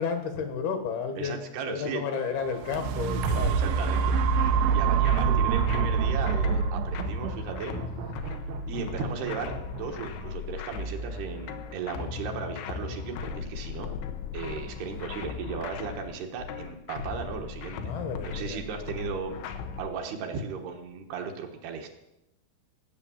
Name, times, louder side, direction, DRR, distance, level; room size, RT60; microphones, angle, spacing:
voice 1, 0.0-3.6 4.5-4.6 5.3-5.5 17.8-18.9, left 6 dB, 65° left, 6 dB, 3.0 m, -32 dB
voice 2, 1.2-2.0 3.6-4.0 4.7-7.8 8.6-13.9 14.3-17.9 18.2-21.9, right 5 dB, 70° right, 3 dB, 3.1 m, -36 dB
sound 1, 2.4-10.5 11.1-11.2, right 6 dB, 85° right, 3.1 m, -26 dB
sound 2, 3.3-19.9, left 6 dB, 85° left, 3.4 m, -37 dB
17.5 x 8.2 x 7.2 m, 0.89 s
omnidirectional pair, 5.1 m